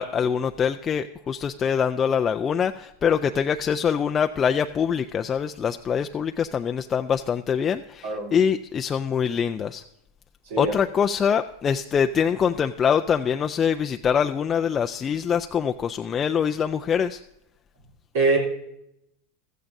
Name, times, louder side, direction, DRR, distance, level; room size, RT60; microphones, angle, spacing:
voice 1, 0.0-9.8 10.6-17.2, left 7 dB, 30° left, 6 dB, 0.4 m, -24 dB
voice 2, 8.0-8.3 10.5-10.7 18.1-18.4, right 3 dB, 75° right, -3 dB, 3.3 m, -22 dB
15.5 x 13.5 x 2.7 m, 0.81 s
hypercardioid pair, 105°, 0 cm